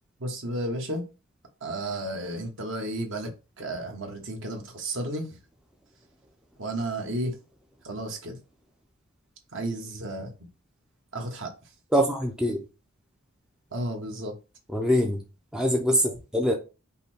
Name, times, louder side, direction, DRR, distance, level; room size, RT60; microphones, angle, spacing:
voice 1, 0.2-1.0 1.6-3.3 3.6-5.3 6.6-7.3 7.8-8.4 9.5-10.3 11.1-11.5 13.7-14.3, right 1 dB, 60° right, 1.3 m, -32 dB
voice 2, 11.9-12.6 14.7-15.2 15.5-16.6, equal, 5° right, 0.5 m, -24 dB
5.4 x 2.2 x 4.3 m
head